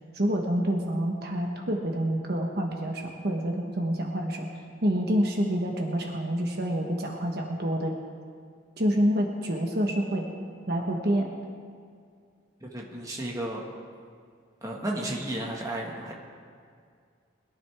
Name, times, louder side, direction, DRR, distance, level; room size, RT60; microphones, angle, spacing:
voice 1, 0.1-4.5 4.8-7.9 8.8-10.3 10.7-11.3, equal, 55° right, 1 dB, 1.2 m, -27 dB
voice 2, 12.6-13.6 14.6-16.1, right 1 dB, 20° right, -2 dB, 1.7 m, -33 dB
21.0 x 13.0 x 3.5 m, 2.2 s
head